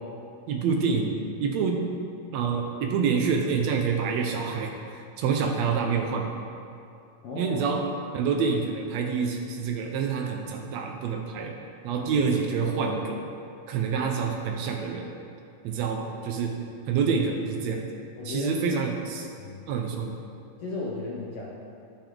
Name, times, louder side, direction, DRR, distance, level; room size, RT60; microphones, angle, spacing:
voice 1, 0.5-1.8 2.3-6.4 7.3-7.8 8.1-11.5 11.8-13.2 13.7-15.1 15.6-16.6 16.9-17.8 18.2-19.3 19.7-20.1, right 5 dB, 80° right, 2 dB, 1.5 m, -27 dB
voice 2, 7.2-7.7 12.0-12.1 18.2-18.7 19.4-19.7 20.6-21.5, left 3 dB, 70° left, -4 dB, 1.4 m, -35 dB
11.5 x 8.7 x 3.8 m, 2.6 s
omnidirectional pair, 3.9 m